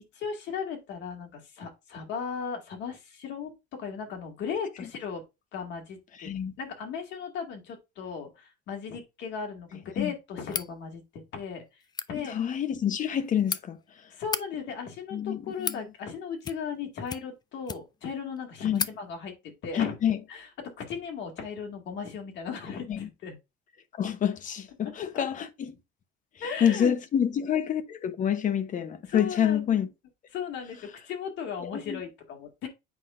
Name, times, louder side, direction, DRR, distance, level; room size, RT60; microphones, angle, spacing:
voice 1, 0.1-5.2 5.5-6.3 6.6-11.6 12.1-12.4 14.1-19.3 19.6-20.0 20.3-23.4 24.8-25.3 26.4-27.0 29.1-29.9 30.3-32.7, left 6 dB, 60° left, 2.1 m, -36 dB
voice 2, 6.2-6.5 10.0-10.1 12.1-13.8 15.1-15.8 18.6-18.9 19.7-20.2 22.9-23.1 24.0-25.7 26.6-29.9 31.6-32.0, left 9 dB, 40° left, 0.9 m, -27 dB
sound 1, 10.5-10.7 11.8-12.1 13.1-13.6 14.2-14.4 15.2-15.8 16.4-16.8 17.1-18.0 18.4-18.5 18.7-19.0, left 6 dB, 20° left, 0.4 m, -34 dB
8.3 x 5.5 x 2.5 m
cardioid pair, 120°, 20 cm